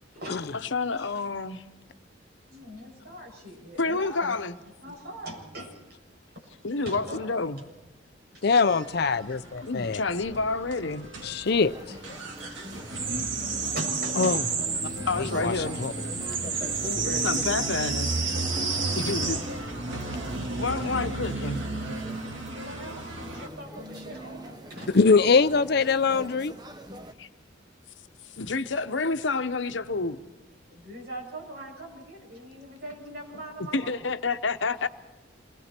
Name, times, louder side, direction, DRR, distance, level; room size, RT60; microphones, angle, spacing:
voice 1, 0.7-1.6 3.8-4.6 6.6-7.6 9.6-11.1 15.1-15.8 17.2-18.1 19.0-19.4 20.6-21.6 27.2-27.3 28.4-30.3 33.7-34.9, left 3 dB, 75° left, 1.0 m, -29 dB
voice 2, 2.5-4.4 4.8-6.0 6.3-6.5 6.8-7.3 8.3-8.5 12.9-15.8 16.4-17.6 18.6-19.0 22.3-25.0 28.9-29.0 30.7-34.0, right 1 dB, 55° right, 7.4 m, -41 dB
voice 3, 8.4-10.0 11.2-11.7 14.2-14.4 15.2-15.5 15.8-15.9 24.9-26.5, left 4 dB, 55° left, 0.6 m, -22 dB
sound 1, 8.5-23.5, right 3 dB, 80° right, 2.5 m, -32 dB
sound 2, 11.4-27.1, equal, 20° right, 1.1 m, -43 dB
28.0 x 21.0 x 4.5 m
head